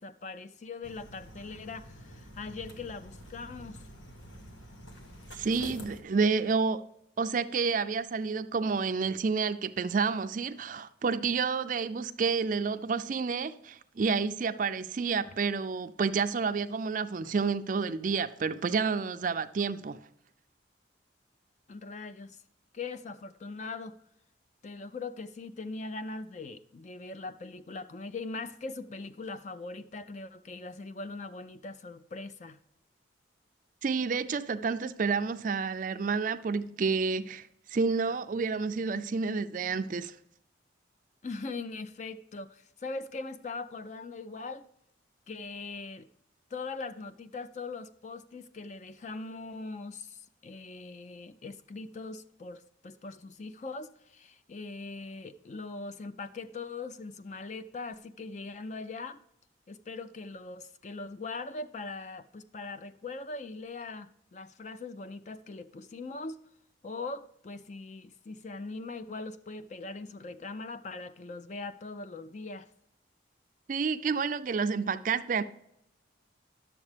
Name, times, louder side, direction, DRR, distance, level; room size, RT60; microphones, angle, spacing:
voice 1, 0.0-3.8 21.7-22.4 22.7-24.0 24.6-32.6 41.2-44.7 45.3-46.1 46.5-59.2 59.7-66.4 66.8-72.7, left 3 dB, 40° left, 0.4 m, -41 dB
sound 1, 0.8-6.0, equal, 80° left, 1.4 m, -47 dB
voice 2, 5.3-6.8 7.2-20.0 33.8-40.1 73.7-75.4, right 5 dB, 45° right, 0.4 m, -29 dB
10.5 x 7.2 x 3.3 m
head